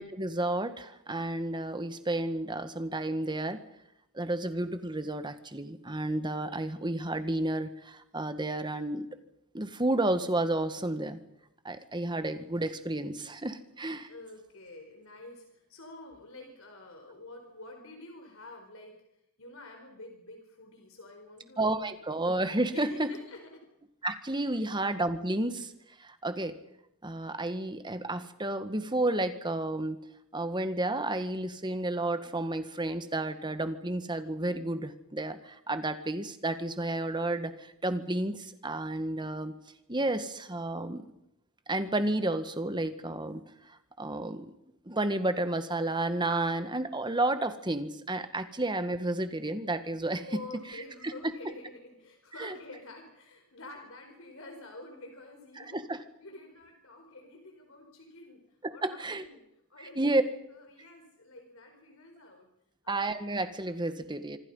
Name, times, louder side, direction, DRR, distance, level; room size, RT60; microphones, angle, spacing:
voice 1, 0.0-3.6 4.1-9.1 9.5-11.2 11.6-14.1 21.6-23.1 24.0-25.7 26.0-26.6 27.0-30.0 30.3-39.5 39.9-41.1 41.7-44.5 44.9-50.3 51.0-51.1 52.4-52.5 55.6-56.0 58.6-59.2 59.8-60.2 62.9-64.4, right 2 dB, 20° right, 10 dB, 1.7 m, -31 dB
voice 2, 14.1-19.0 19.4-21.8 22.7-23.6 24.4-24.6 50.2-55.9 56.2-58.4 58.7-59.4 59.7-62.5 62.8-63.2, left 2 dB, 65° left, 3 dB, 4.6 m, -48 dB
26.0 x 26.0 x 5.7 m, 0.79 s
head